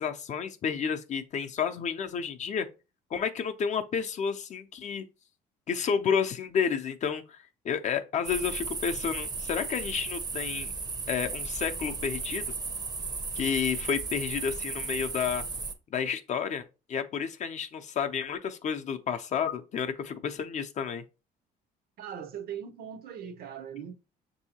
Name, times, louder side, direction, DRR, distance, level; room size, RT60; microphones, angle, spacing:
voice 1, 0.0-2.7 3.1-5.1 5.7-7.4 7.6-10.7 11.1-12.5 13.3-15.4 15.9-21.0, left 7 dB, 45° left, 0.5 m, -31 dB
sound 1, 8.2-15.7, right 4 dB, 25° right, 0.6 m, -35 dB
voice 2, 22.0-23.9, right 8 dB, 65° right, 0.6 m, -40 dB
6.2 x 2.7 x 2.8 m
cardioid pair, 110°, 17 cm